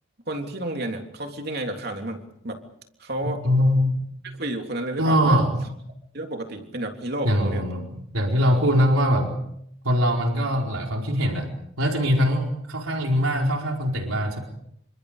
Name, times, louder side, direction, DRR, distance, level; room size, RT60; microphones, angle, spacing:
voice 1, 0.3-2.6 3.0-3.4 4.4-5.4 6.1-7.7, right 1 dB, 50° right, 3 dB, 3.4 m, -31 dB
voice 2, 3.2-4.0 5.0-5.6 7.2-9.3 9.8-11.5 11.8-14.4, equal, 90° right, 1 dB, 4.6 m, -22 dB
29.5 x 26.0 x 5.1 m, 0.71 s
head